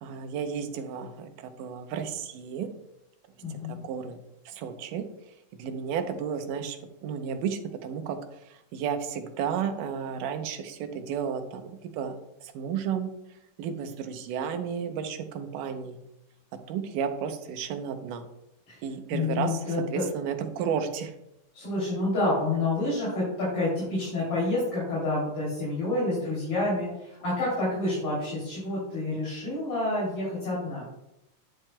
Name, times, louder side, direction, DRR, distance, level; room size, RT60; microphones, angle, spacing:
voice 1, 0.0-2.7 3.8-5.1 5.6-6.8 7.0-8.2 8.5-13.1 13.6-16.0 16.7-18.2 18.8-21.1, right 7 dB, 90° right, 7 dB, 2.4 m, -32 dB
voice 2, 3.4-3.8 18.7-18.8 19.1-20.0 21.5-30.8, left 2 dB, 45° left, -7 dB, 3.8 m, -28 dB
10.5 x 7.7 x 2.2 m, 0.86 s
omnidirectional pair, 3.6 m